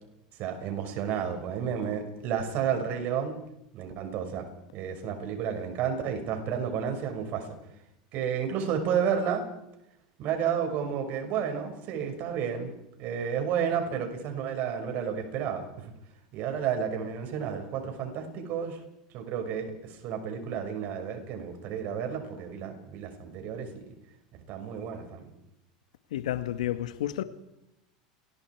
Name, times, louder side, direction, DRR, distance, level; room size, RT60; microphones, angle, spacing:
voice 1, 0.4-3.4 3.7-4.5 4.7-7.6 8.1-9.4 10.2-12.7 13.0-15.9 16.3-18.8 19.1-23.8 24.5-25.3, right 7 dB, 55° right, 5.9 m, -31 dB
voice 2, 26.1-27.2, left 13 dB, 75° left, 1.6 m, -30 dB
29.0 x 20.5 x 4.7 m
hypercardioid pair, 90°, 4 cm